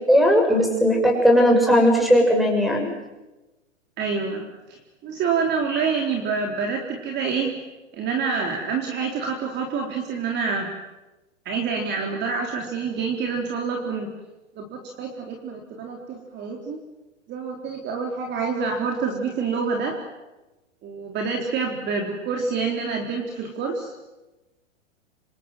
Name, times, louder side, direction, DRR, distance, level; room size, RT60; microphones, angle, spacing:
voice 1, 0.1-2.9, equal, ahead, 3 dB, 6.6 m, -17 dB
voice 2, 4.0-4.5 5.0-7.5 7.9-10.7 11.5-14.1 14.6-16.8 17.3-20.0 20.8-23.9, right 5 dB, 30° right, 2 dB, 3.9 m, -27 dB
26.5 x 26.5 x 7.7 m, 1.1 s
hypercardioid pair, 130°, 37 cm